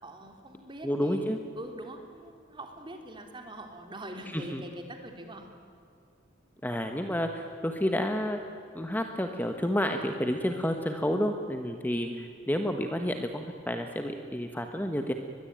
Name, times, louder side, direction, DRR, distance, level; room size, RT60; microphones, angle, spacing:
voice 1, 0.0-5.5 11.9-12.2, right 1 dB, 25° right, 4 dB, 3.4 m, -43 dB
voice 2, 0.8-1.4 4.3-4.6 6.6-8.4 8.7-12.1 12.5-15.1, equal, 10° left, 5 dB, 1.4 m, -30 dB
23.0 x 21.5 x 8.9 m, 2.5 s
head